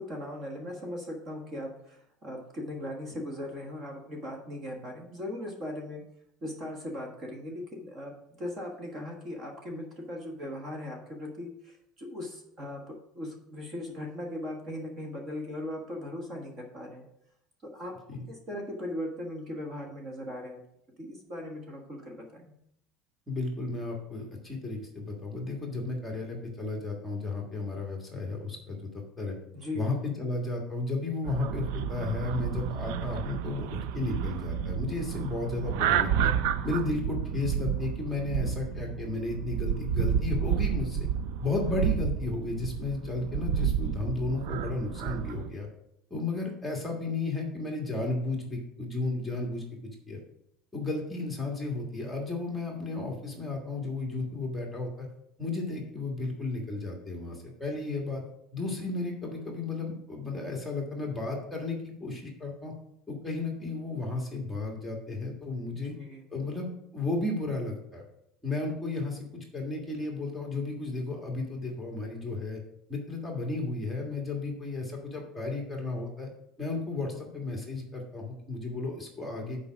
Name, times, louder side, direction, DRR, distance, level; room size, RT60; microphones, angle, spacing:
voice 1, 0.0-6.0 6.4-17.1 17.7-17.9 18.3-20.6 21.0-22.5 29.5-29.8 65.7-66.2, left 1 dB, 30° right, 1 dB, 1.3 m, -39 dB
voice 2, 23.3-29.4 29.7-36.3 36.6-41.1 41.4-45.7 46.1-50.2 50.7-55.1 55.4-58.2 58.5-62.7 63.1-66.0 66.3-68.0 68.4-72.6 72.9-76.3 76.6-79.7, left 3 dB, 5° left, -1 dB, 1.5 m, -33 dB
sound 1, 31.2-45.5, right 8 dB, 75° right, 0.4 m, -31 dB
6.9 x 4.9 x 6.0 m, 0.75 s
cardioid pair, 170°, 0 cm